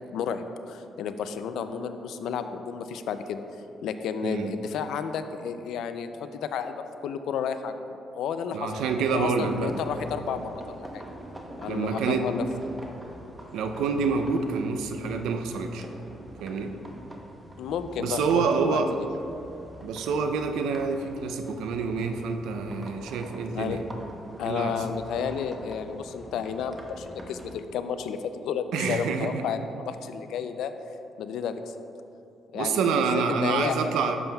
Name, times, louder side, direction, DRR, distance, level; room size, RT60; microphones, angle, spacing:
voice 1, 0.1-3.4 3.8-11.0 11.6-12.4 17.6-18.8 23.5-23.8 24.4-30.7 31.2-31.7 32.5-32.9 33.1-33.8, left 7 dB, 80° left, 9 dB, 0.4 m, -32 dB
voice 2, 8.5-9.7 11.7-12.3 13.5-15.8 16.4-16.7 18.0-18.9 19.8-23.8 24.4-24.7 28.7-29.4 32.5-34.2, right 5 dB, 85° right, 6 dB, 0.5 m, -27 dB
sound 1, 8.7-27.6, right 1 dB, 15° right, 0.9 m, -45 dB
11.0 x 7.0 x 2.3 m, 2.8 s
cardioid pair, 90°, 0 cm